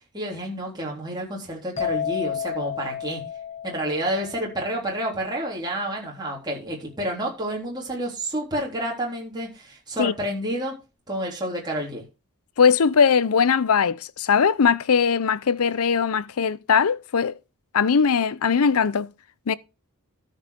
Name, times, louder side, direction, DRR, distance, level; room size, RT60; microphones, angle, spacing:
voice 1, 0.1-3.2 3.6-10.7 11.1-12.0, right 1 dB, 20° right, 3.6 m, -29 dB
sound 1, 1.8-5.4, left 9 dB, 30° left, 1.1 m, -32 dB
voice 2, 12.6-17.4 17.7-19.1 19.5-19.6, left 6 dB, 70° left, 0.6 m, -20 dB
13.5 x 5.6 x 5.1 m
head